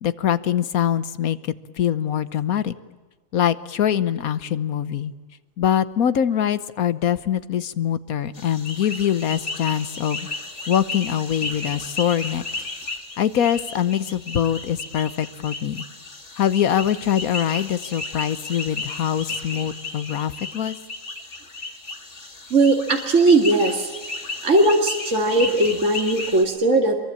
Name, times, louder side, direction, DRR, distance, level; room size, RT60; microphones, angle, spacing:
voice 1, 0.0-1.4 1.8-2.7 3.3-5.1 5.6-10.3 10.7-12.4 13.2-15.8 16.4-20.8, left 9 dB, 80° left, 14 dB, 1.4 m, -23 dB
sound 1, 8.3-26.4, left 2 dB, 55° left, 2.7 m, -34 dB
voice 2, 22.5-23.9 24.4-27.0, right 2 dB, 60° right, 2 dB, 2.5 m, -18 dB
24.5 x 23.0 x 8.7 m, 1.3 s
omnidirectional pair, 1.5 m